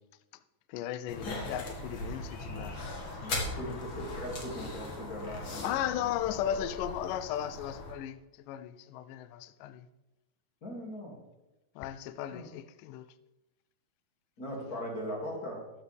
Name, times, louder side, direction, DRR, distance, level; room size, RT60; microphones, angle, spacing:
voice 1, 0.7-2.8 3.7-3.8 5.6-9.9 11.8-13.1, left 11 dB, 85° left, 1.9 m, -36 dB
sound 1, 1.1-7.9, left 2 dB, 45° left, 1.8 m, -39 dB
voice 2, 3.2-6.4 10.6-11.1 12.3-12.5 14.4-15.6, equal, 30° left, 2.4 m, -40 dB
13.0 x 8.7 x 3.5 m
omnidirectional pair, 4.3 m